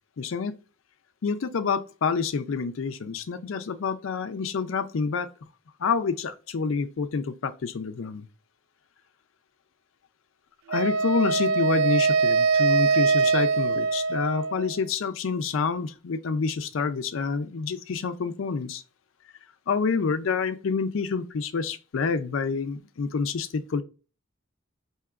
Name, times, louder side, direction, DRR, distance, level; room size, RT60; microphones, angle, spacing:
voice 1, 0.2-0.5 1.2-5.3 5.8-8.3 10.7-18.8 19.7-23.8, left 5 dB, 70° left, 0.4 m, -28 dB
Wind instrument woodwind instrument, 10.7-14.8, right 4 dB, 70° right, 0.3 m, -23 dB
5.7 x 2.8 x 2.4 m
head